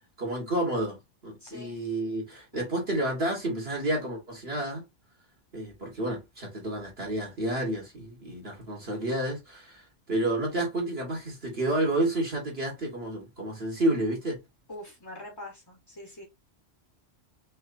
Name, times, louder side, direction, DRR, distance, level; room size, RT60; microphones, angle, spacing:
voice 1, 0.2-4.9 5.5-14.4, right 1 dB, 55° right, 2.3 m, -30 dB
voice 2, 1.4-1.8 14.7-16.2, left 1 dB, 20° left, 1.3 m, -43 dB
5.5 x 3.1 x 2.7 m
omnidirectional pair, 1.2 m